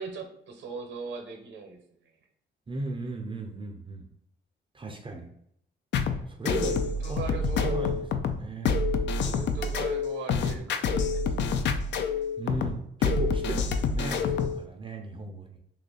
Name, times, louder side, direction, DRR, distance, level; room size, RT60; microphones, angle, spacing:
voice 1, 0.0-1.8 6.8-7.8 9.2-11.5, right 5 dB, 65° right, 5 dB, 0.7 m, -39 dB
voice 2, 2.7-4.1 4.7-5.3 6.3-7.2 7.6-8.0 8.2-8.7 12.4-15.6, right 2 dB, 25° right, 2 dB, 0.4 m, -36 dB
sound 1, 5.9-14.6, left 4 dB, 65° left, 0.4 m, -27 dB
2.8 x 2.5 x 3.7 m, 0.73 s
cardioid pair, 90°, 20 cm